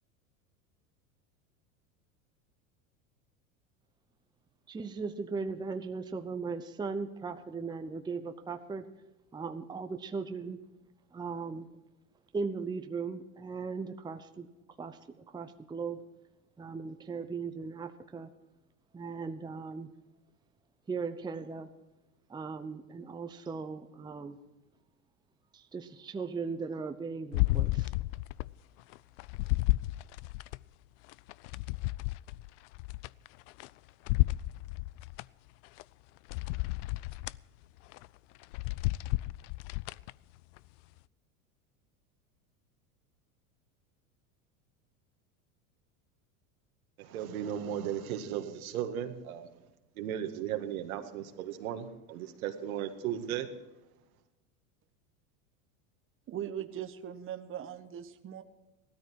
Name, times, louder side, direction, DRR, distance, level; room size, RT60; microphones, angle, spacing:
voice 1, 4.7-8.9 9.3-10.6 11.1-11.7 12.3-14.5 14.8-16.0 16.6-18.3 18.9-19.9 20.9-21.7 22.3-24.4 25.5-27.9, right 4 dB, 10° right, 7 dB, 0.8 m, -38 dB
sound 1, 27.3-28.5 28.9-30.6 31.1-33.7 34.0-35.2 35.8-35.9 36.3-37.4 37.9-38.1 38.4-40.1 40.6-40.7, left 21 dB, 60° left, 0.5 m, -32 dB
voice 2, 47.0-49.5 50.0-53.5, right 10 dB, 75° right, 6 dB, 1.8 m, -36 dB
voice 3, 56.3-58.4, right 10 dB, 30° right, 8 dB, 1.1 m, -40 dB
16.0 x 13.0 x 4.7 m, 1.0 s
supercardioid pair, 105°, 42 cm